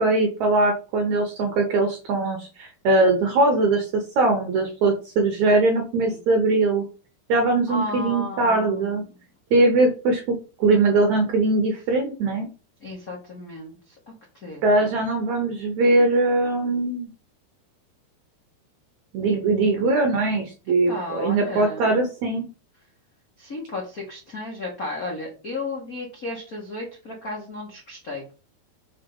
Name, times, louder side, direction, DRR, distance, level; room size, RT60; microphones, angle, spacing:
voice 1, 0.0-6.8 7.3-9.0 9.5-12.5 14.6-17.1 19.1-22.5, right 2 dB, 75° right, 3 dB, 1.7 m, -21 dB
voice 2, 7.7-9.2 12.8-14.0 14.3-15.0 20.9-21.9 23.4-28.3, left 2 dB, 75° left, -3 dB, 0.8 m, -34 dB
6.5 x 3.7 x 5.4 m, 0.35 s
omnidirectional pair, 4.6 m